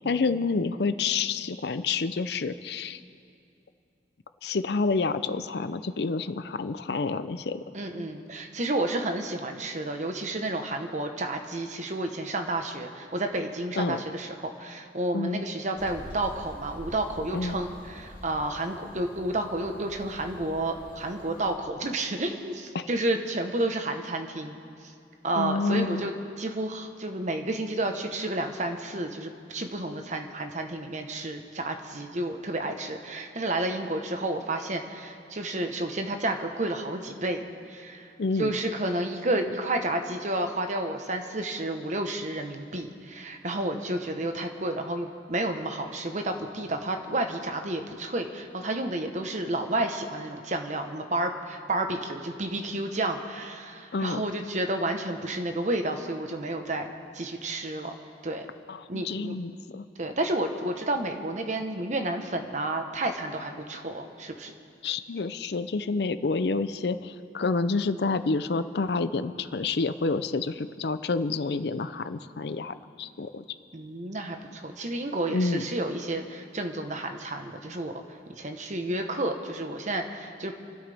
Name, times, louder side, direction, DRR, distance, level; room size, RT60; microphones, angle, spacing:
voice 1, 0.0-3.0 4.4-7.6 13.8-14.0 15.1-15.4 17.3-17.6 22.7-22.9 25.3-26.1 38.2-38.6 53.9-54.2 58.7-59.9 64.8-73.4 75.3-75.7, left 4 dB, 65° left, 12 dB, 0.5 m, -28 dB
voice 2, 7.7-24.6 25.2-37.4 37.7-38.1 38.4-57.9 58.2-58.5 58.9-59.3 60.0-64.5 73.7-77.9 78.4-80.5, right 1 dB, 40° right, 5 dB, 1.1 m, -31 dB
sound 1, 15.8-21.5, equal, 30° left, 3.0 m, -46 dB
29.0 x 12.5 x 3.5 m, 2.5 s
head